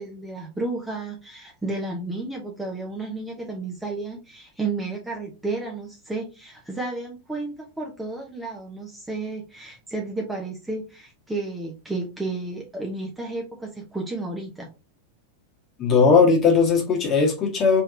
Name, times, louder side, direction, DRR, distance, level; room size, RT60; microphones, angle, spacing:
voice 1, 0.0-14.7, right 3 dB, 5° right, -1 dB, 0.9 m, -32 dB
voice 2, 15.8-17.8, left 5 dB, 30° left, 0 dB, 1.6 m, -18 dB
3.8 x 3.4 x 2.7 m, 0.28 s
figure-of-eight pair, 90°, 0 cm